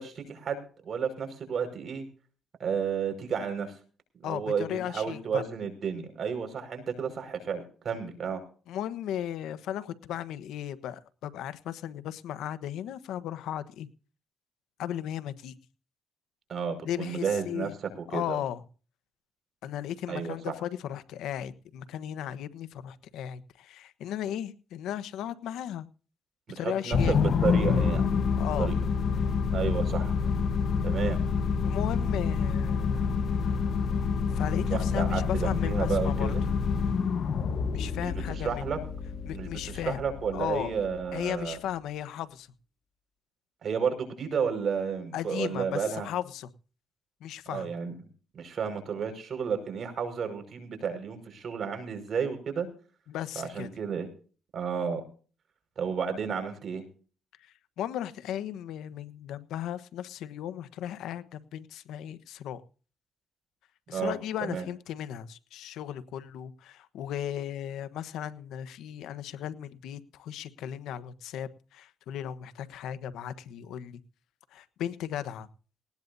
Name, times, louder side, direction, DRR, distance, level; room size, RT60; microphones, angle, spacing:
voice 1, 0.0-2.1 2.6-3.7 4.2-8.4 16.5-17.7 17.9-18.4 20.1-20.4 26.6-28.1 28.6-28.8 29.5-30.2 30.8-31.2 34.7-36.4 38.0-38.8 39.3-41.6 43.6-46.1 47.5-47.9 48.3-52.7 53.4-54.1 54.5-55.0 55.8-56.9 63.9-64.6, right 6 dB, 50° right, 6 dB, 5.4 m, -32 dB
voice 2, 4.2-5.4 8.7-13.9 14.8-15.6 16.8-17.7 18.1-18.6 19.6-25.9 26.5-27.2 28.4-28.7 31.6-33.2 34.3-36.3 37.7-38.7 39.2-40.0 40.3-40.7 41.1-42.5 45.1-46.5 47.2-47.7 53.1-53.7 57.4-62.6 63.9-74.0 74.5-75.5, left 10 dB, 85° left, 14 dB, 1.1 m, -36 dB
sound 1, 26.9-41.4, left 5 dB, 60° left, 1.2 m, -28 dB
19.0 x 18.5 x 2.7 m, 0.39 s
cardioid pair, 90°, 0 cm